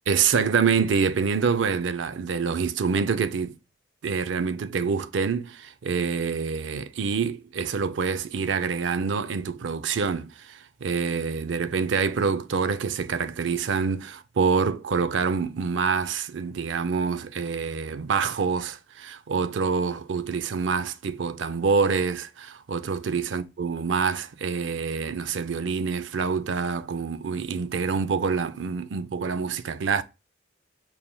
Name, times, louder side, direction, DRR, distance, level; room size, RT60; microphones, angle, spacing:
voice 1, 0.1-3.5 4.0-30.0, right 5 dB, 85° right, 0.5 m, -26 dB
5.9 x 3.5 x 2.2 m
head